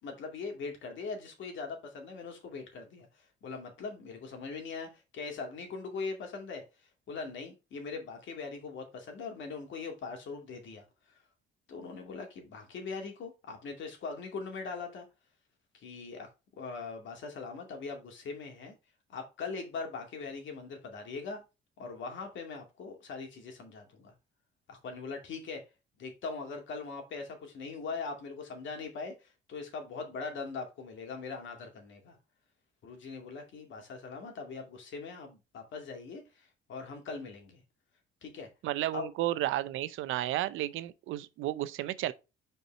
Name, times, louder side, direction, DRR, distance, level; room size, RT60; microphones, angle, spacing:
voice 1, 0.0-3.1 3.4-6.6 7.1-10.8 11.1-11.2 11.7-15.1 15.7-16.3 16.6-18.7 19.1-21.4 21.8-24.1 24.7-25.6 26.0-32.2 32.8-37.6 38.2-38.5 38.9-39.1, left 4 dB, 70° left, 2.3 m, -41 dB
voice 2, 38.6-42.1, right 14 dB, 85° right, 0.6 m, -32 dB
5.5 x 4.6 x 4.2 m
cardioid pair, 90°, 20 cm